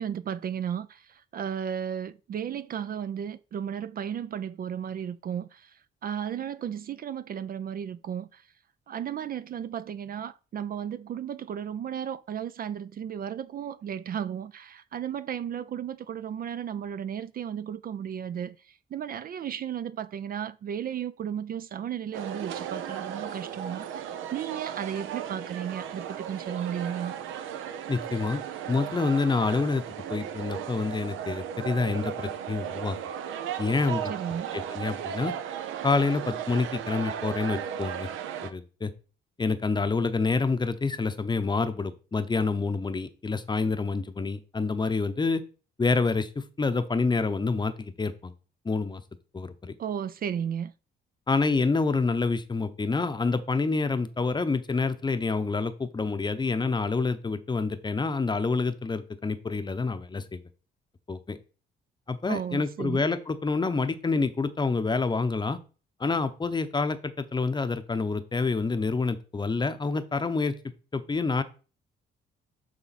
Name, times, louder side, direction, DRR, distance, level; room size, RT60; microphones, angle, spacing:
voice 1, 0.0-5.7 6.0-8.4 8.9-18.6 18.9-27.1 34.1-34.6 49.8-50.7 62.3-63.0, right 9 dB, 45° right, 0.4 m, -34 dB
sound 1, 22.1-38.5, right 9 dB, 85° right, 0.7 m, -36 dB
voice 2, 27.9-28.4 28.7-29.8 30.1-33.0 33.6-34.1 34.5-35.3 35.8-38.1 38.4-38.9 39.4-45.4 45.8-48.3 48.6-49.0 49.3-49.7 51.3-60.4 61.1-61.4 62.1-65.6 66.0-70.5 70.9-71.4, left 4 dB, 20° left, 0.7 m, -27 dB
8.9 x 3.7 x 4.1 m
cardioid pair, 90°, 20 cm